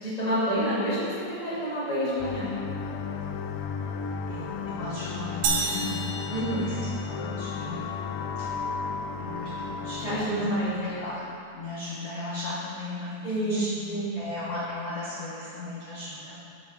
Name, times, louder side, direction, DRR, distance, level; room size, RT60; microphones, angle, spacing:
voice 1, 0.0-2.5 6.3-6.8 10.0-11.0 13.2-14.3, right 1 dB, 20° right, -11 dB, 1.1 m, -28 dB
sound 1, 2.2-11.2, left 5 dB, 85° left, 2.0 m, -34 dB
voice 2, 4.3-6.0 6.6-7.8 9.2-10.4 10.7-11.2 11.5-16.4, left 2 dB, 65° left, -8 dB, 1.5 m, -36 dB
sound 2, 5.4-7.4, right 4 dB, 80° right, 1.9 m, -30 dB
11.0 x 5.3 x 4.6 m, 2.5 s
omnidirectional pair, 4.5 m